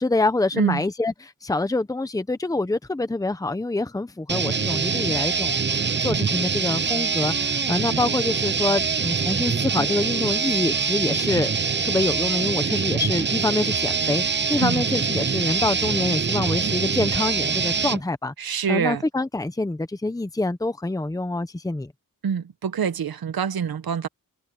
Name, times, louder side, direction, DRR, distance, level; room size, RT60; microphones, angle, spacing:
voice 1, 0.0-11.5 11.8-21.9, left 2 dB, 10° left, 1.0 m, -26 dB
sound 1, 4.3-18.0, right 5 dB, 30° right, 0.7 m, -24 dB
voice 2, 18.4-19.0 22.2-24.1, right 7 dB, 90° right, 1.3 m, -25 dB
wide cardioid pair, 145°, 35 cm